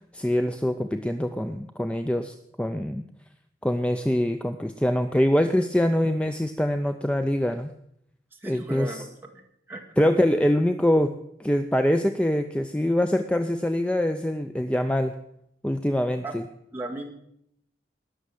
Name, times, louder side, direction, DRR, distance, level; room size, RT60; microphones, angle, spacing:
voice 1, 0.1-3.0 3.6-7.7 8.5-9.0 10.0-11.1 11.4-15.1 15.6-16.4, left 1 dB, 5° left, 7 dB, 0.5 m, -24 dB
voice 2, 8.4-9.4 9.7-10.1 16.2-16.3 16.7-17.1, right 2 dB, 10° right, 0 dB, 1.8 m, -36 dB
19.5 x 6.5 x 7.8 m, 0.73 s
head